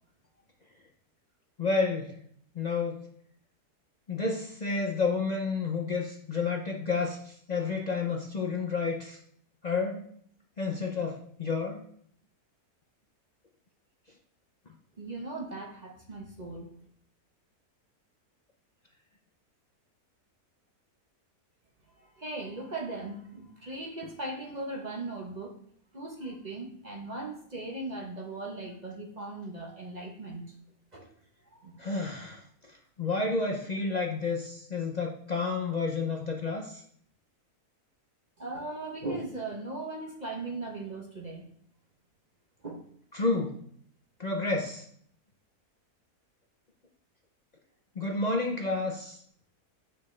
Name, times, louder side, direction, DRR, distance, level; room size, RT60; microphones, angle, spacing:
voice 1, 1.6-2.2 2.5-3.1 4.1-9.2 9.6-10.1 10.6-11.9 31.8-32.4 32.7-36.8 43.1-43.6 44.2-44.8 48.0-49.2, left 3 dB, 55° left, 1 dB, 0.4 m, -30 dB
voice 2, 15.0-16.7 22.0-25.6 25.9-30.4 30.9-31.1 31.6-31.8 38.4-41.4 42.6-42.8, right 2 dB, 35° right, 1 dB, 0.8 m, -38 dB
7.4 x 5.6 x 3.2 m, 0.62 s
omnidirectional pair, 1.6 m